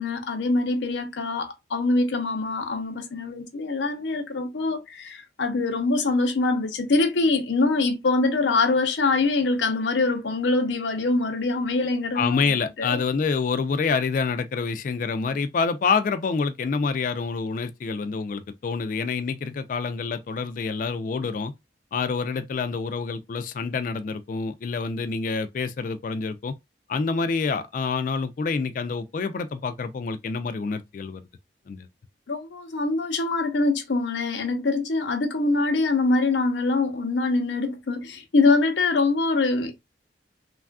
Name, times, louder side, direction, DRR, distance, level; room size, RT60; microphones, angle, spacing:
voice 1, 0.0-12.5 12.8-13.0 32.3-39.7, left 3 dB, 90° left, 0.7 m, -24 dB
voice 2, 12.1-21.5 21.9-26.5 26.9-31.2 31.7-31.9, left 5 dB, 45° left, 0.3 m, -27 dB
3.3 x 2.4 x 2.2 m
head